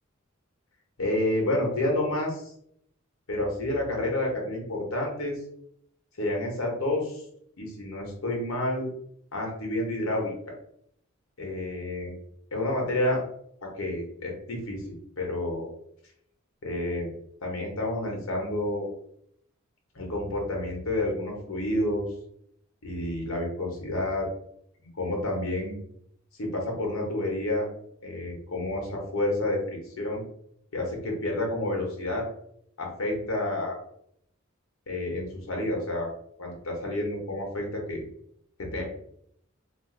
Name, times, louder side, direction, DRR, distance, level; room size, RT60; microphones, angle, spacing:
voice 1, 1.0-2.5 3.3-5.4 6.2-7.2 7.6-8.9 9.3-10.5 11.4-12.1 12.5-13.2 13.8-14.8 15.2-15.6 16.6-17.1 17.4-18.9 19.9-22.1 22.8-24.3 24.9-25.7 26.4-27.7 28.0-30.2 30.7-32.2 32.8-33.8 34.9-36.1 36.4-38.0 38.6-38.8, left 1 dB, 75° left, 0 dB, 0.9 m, -29 dB
2.5 x 2.4 x 3.7 m, 0.71 s
head